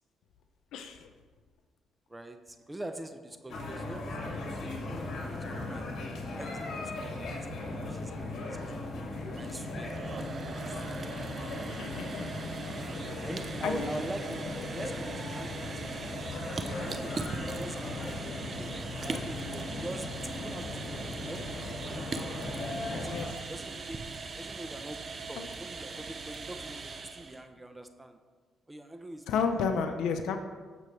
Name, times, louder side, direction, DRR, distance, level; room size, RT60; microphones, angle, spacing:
voice 1, 0.7-1.1 11.7-12.3 13.6-13.9 23.0-23.3 25.4-25.5 29.3-30.4, left 5 dB, 85° left, 6 dB, 0.7 m, -31 dB
voice 2, 2.1-5.9 6.3-7.4 7.8-9.9 10.7-11.9 13.2-16.2 16.7-18.1 18.5-20.1 20.4-22.0 22.3-22.9 23.5-24.0 24.4-25.0 25.3-28.2 28.7-29.6, right 1 dB, 15° right, 8 dB, 0.7 m, -44 dB
sound 1, 3.5-23.3, left 2 dB, 65° left, 2.2 m, -38 dB
sound 2, 9.2-27.4, right 4 dB, 45° right, 0.7 m, -40 dB
14.5 x 6.1 x 3.2 m, 1.4 s
cardioid pair, 85°, 0 cm